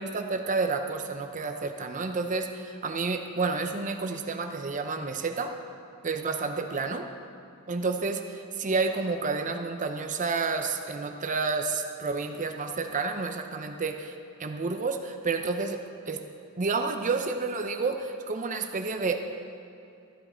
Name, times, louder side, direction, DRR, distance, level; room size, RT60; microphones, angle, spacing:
voice 1, 0.0-5.5 6.0-7.1 7.7-16.2 16.6-19.2, right 4 dB, 35° right, 6 dB, 0.6 m, -30 dB
13.5 x 10.5 x 4.4 m, 2.7 s
head